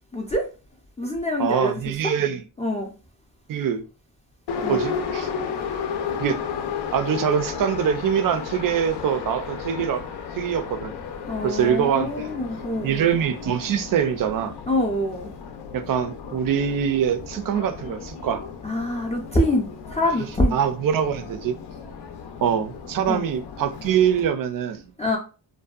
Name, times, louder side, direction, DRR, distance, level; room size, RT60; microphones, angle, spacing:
voice 1, 0.1-0.5 1.0-1.8 2.6-2.9 4.6-4.8 11.3-13.1 14.7-15.3 18.6-20.6 23.1-23.2 25.0-25.2, left 1 dB, 15° left, 0.4 m, -25 dB
voice 2, 1.4-2.4 3.5-3.8 4.7-5.3 6.2-6.4 6.9-10.0 10.3-10.9 11.4-12.3 12.8-14.5 15.7-18.4 20.5-21.5 22.4-24.8, right 8 dB, 50° right, 0.4 m, -24 dB
Subway metro underground, 4.5-24.3, left 6 dB, 65° left, 0.5 m, -34 dB
2.6 x 2.2 x 2.3 m
cardioid pair, 75°, 44 cm